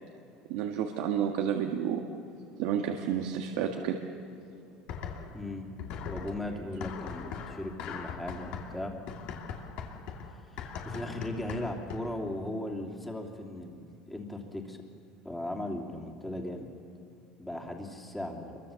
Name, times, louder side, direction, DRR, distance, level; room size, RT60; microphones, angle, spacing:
voice 1, 0.5-2.0 2.6-4.0, right 8 dB, 70° right, 2 dB, 1.8 m, -30 dB
sound 1, 4.9-5.5 5.8-12.3, left 6 dB, 55° left, 2.5 m, -40 dB
voice 2, 5.3-5.7 6.1-8.9 10.5-14.8 15.2-16.7 17.4-18.6, left 1 dB, 5° left, 0 dB, 2.9 m, -37 dB
27.5 x 23.5 x 7.1 m, 2.5 s
cardioid pair, 155°, 2 cm